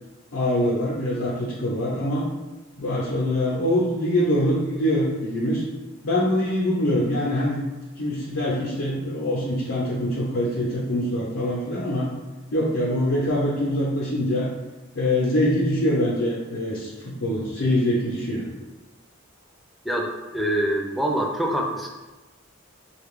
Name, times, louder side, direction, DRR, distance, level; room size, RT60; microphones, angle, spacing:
voice 1, 0.3-2.3 2.8-5.6 6.0-7.6 8.0-12.1 12.5-14.5 14.9-18.4, left 1 dB, 85° left, -6 dB, 0.6 m, -24 dB
voice 2, 19.8-21.9, right 1 dB, ahead, 0 dB, 0.4 m, -25 dB
3.2 x 2.3 x 3.5 m, 1.1 s
head